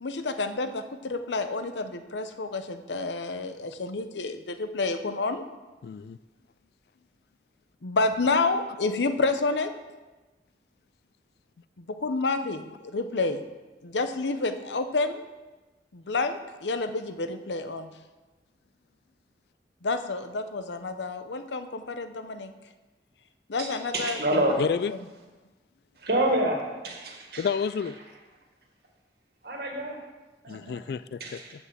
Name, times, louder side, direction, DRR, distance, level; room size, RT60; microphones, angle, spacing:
voice 1, 0.0-5.4 7.8-9.7 11.8-13.4 13.8-15.2 15.9-17.9 19.8-22.5 23.5-24.4, left 3 dB, 85° left, 9 dB, 0.8 m, -29 dB
voice 2, 5.8-6.2 24.6-24.9 27.4-28.0 30.5-31.4, left 6 dB, 60° left, 16 dB, 0.3 m, -29 dB
voice 3, 23.9-24.6 26.0-27.5 29.4-30.0 30.4-30.8 31.2-31.5, right 1 dB, 60° right, 1 dB, 1.8 m, -28 dB
7.3 x 6.8 x 7.4 m, 1.2 s
head